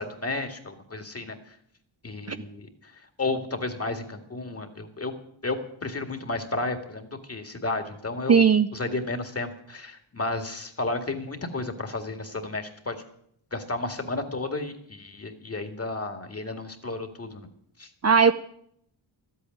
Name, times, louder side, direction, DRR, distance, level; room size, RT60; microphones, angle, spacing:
voice 1, 0.0-1.4 2.0-2.9 3.2-5.1 5.4-8.5 8.7-13.0 13.5-17.5 17.8-17.9, left 2 dB, 30° left, 6 dB, 2.1 m, -32 dB
voice 2, 8.3-8.7 18.0-18.3, right 6 dB, 35° right, 10 dB, 0.6 m, -17 dB
13.0 x 8.6 x 9.5 m, 0.71 s
cardioid pair, 75°, 48 cm